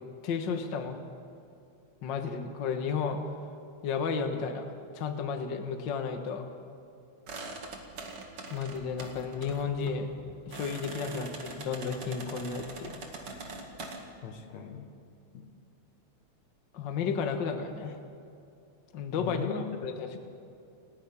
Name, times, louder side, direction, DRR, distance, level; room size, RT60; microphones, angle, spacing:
voice 1, 0.2-1.0 2.0-3.2 3.8-4.6 4.9-6.4 8.5-10.1 10.5-13.0 16.7-18.0 18.9-19.5 19.8-20.1, left 6 dB, 45° left, 5 dB, 1.7 m, -32 dB
sound 1, 7.3-14.0, right 3 dB, 50° right, 2.8 m, -43 dB
voice 2, 14.2-14.9 15.3-15.5 19.2-19.6, left 6 dB, 70° left, 6 dB, 2.7 m, -38 dB
29.5 x 10.5 x 8.5 m, 2.6 s
omnidirectional pair, 3.4 m